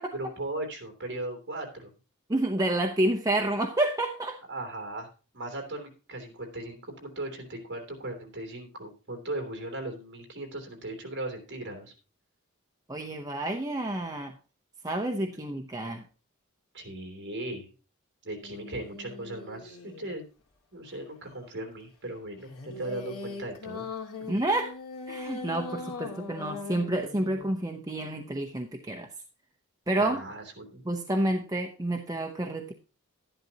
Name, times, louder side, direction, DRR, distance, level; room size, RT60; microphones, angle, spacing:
voice 1, 0.1-1.9 4.5-5.1 5.3-11.9 16.7-17.7 18.2-20.2 20.7-23.8 30.0-30.8, right 1 dB, 50° right, 4 dB, 2.9 m, -38 dB
voice 2, 2.3-4.4 12.9-14.4 14.8-16.0 24.3-24.7 25.1-29.1 29.9-30.2 30.8-32.7, right 1 dB, 15° right, 3 dB, 0.7 m, -29 dB
sound 1, 18.4-20.2 22.5-27.5, left 3 dB, 85° left, 2.1 m, -40 dB
12.0 x 11.0 x 2.9 m, 0.33 s
head